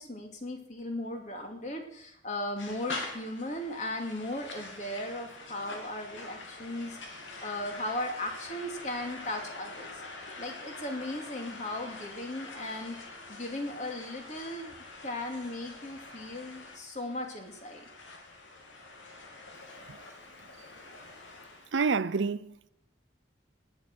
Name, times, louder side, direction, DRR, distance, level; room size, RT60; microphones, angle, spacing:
voice 1, 0.0-10.0 10.4-13.0 13.3-14.7 15.0-17.9, left 1 dB, 40° left, 2.5 m, -37 dB
sound 1, 2.6-21.7, left 3 dB, 90° left, 2.8 m, -45 dB
voice 2, 21.7-22.7, right 5 dB, 80° right, 0.6 m, -29 dB
18.5 x 9.0 x 6.1 m
head